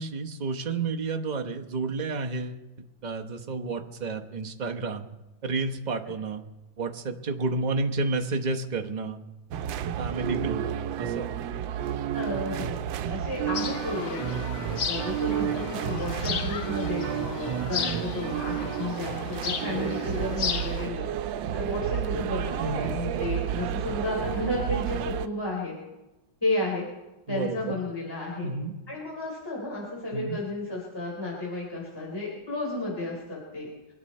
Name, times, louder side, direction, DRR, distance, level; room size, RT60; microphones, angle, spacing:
voice 1, 0.0-2.6 3.0-5.1 5.4-6.4 6.8-9.2 10.0-10.6 11.0-11.3 22.6-22.9 27.3-27.8 28.4-28.7 30.1-30.4, right 3 dB, 35° right, 4 dB, 0.8 m, -30 dB
sound 1, 9.5-25.3, right 10 dB, 85° right, 1.4 m, -31 dB
voice 2, 12.1-12.8 13.1-14.3 14.9-21.1 21.5-25.8 26.4-26.9 27.3-28.5 28.9-33.7, left 2 dB, 10° left, -4 dB, 3.7 m, -32 dB
sound 2, 13.5-20.9, left 6 dB, 55° left, 1.2 m, -35 dB
24.0 x 10.0 x 4.3 m, 1.0 s
omnidirectional pair, 2.0 m